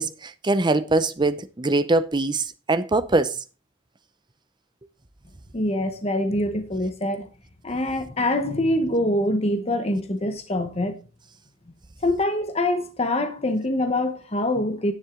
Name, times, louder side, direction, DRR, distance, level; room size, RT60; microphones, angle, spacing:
voice 1, 0.0-3.4, right 2 dB, 25° right, 0.7 m, -22 dB
voice 2, 5.5-7.3 7.6-11.0 12.0-14.9, left 1 dB, 30° left, 1.0 m, -24 dB
10.0 x 9.9 x 3.7 m
head